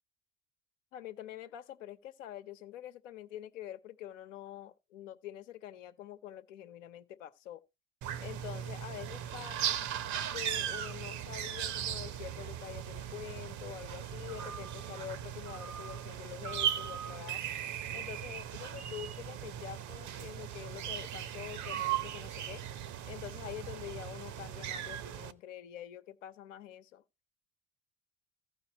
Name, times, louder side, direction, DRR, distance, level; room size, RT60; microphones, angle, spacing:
voice 1, 0.9-7.6 8.2-9.8 10.3-17.4 17.9-22.6 23.1-27.0, left 11 dB, 75° left, 1.0 m, -46 dB
sound 1, 8.0-25.3, right 10 dB, 50° right, 0.9 m, -38 dB
15.5 x 5.3 x 2.9 m
figure-of-eight pair, 55°, 38 cm